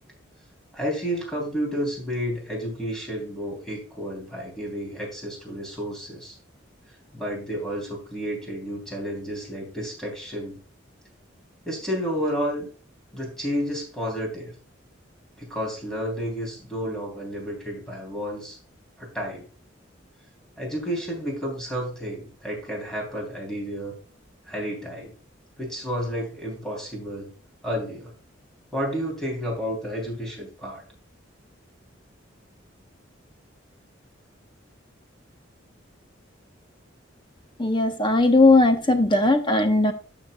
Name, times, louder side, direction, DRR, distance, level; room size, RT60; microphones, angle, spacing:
voice 1, 0.7-6.4 7.1-10.6 11.6-12.7 13.1-14.5 15.4-18.6 19.0-19.4 20.6-23.9 24.5-25.1 25.6-27.3 27.6-28.1 28.7-30.8, equal, 5° left, 3.2 m, -31 dB
voice 2, 37.6-39.9, left 2 dB, 25° left, 0.9 m, -18 dB
13.0 x 5.9 x 2.3 m
head